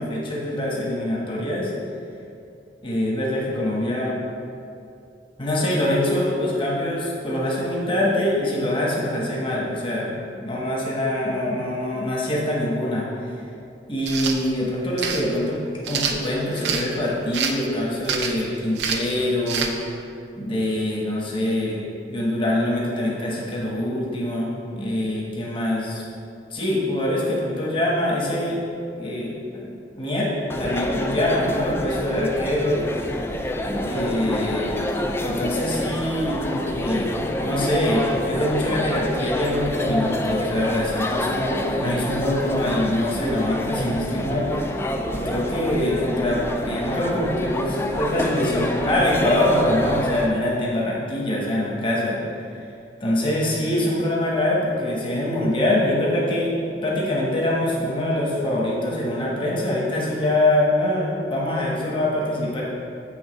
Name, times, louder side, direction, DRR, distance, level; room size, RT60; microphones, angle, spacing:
voice 1, 0.0-1.7 2.8-4.2 5.4-13.1 13.9-15.6 15.9-19.7 20.4-21.8 22.1-26.0 26.5-28.6 29.0-30.3 30.6-33.2 33.7-34.7 35.2-37.1 37.4-44.7 45.1-52.2 53.0-56.5 56.8-62.6, left 1 dB, 30° left, -5 dB, 1.2 m, -24 dB
sound 1, 14.0-14.4 15.0-15.2 15.8-16.8 17.3-17.6 18.0-18.4 18.8-19.1 19.5-19.7, right 6 dB, 75° right, 0.6 m, -26 dB
sound 2, 30.5-50.3, left 1 dB, 15° left, 0.4 m, -27 dB
8.0 x 3.5 x 5.1 m, 2.5 s
head